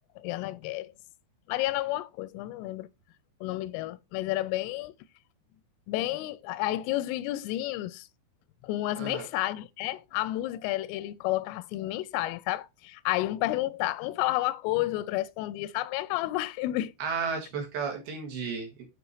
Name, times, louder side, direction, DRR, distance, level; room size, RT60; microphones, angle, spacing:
voice 1, 0.2-0.9 1.5-2.9 3.4-4.9 5.9-8.1 8.6-16.9, left 16 dB, 90° left, 3.1 m, -31 dB
voice 2, 17.0-18.9, right 5 dB, 60° right, 3.3 m, -33 dB
7.9 x 5.2 x 3.2 m
omnidirectional pair, 5.7 m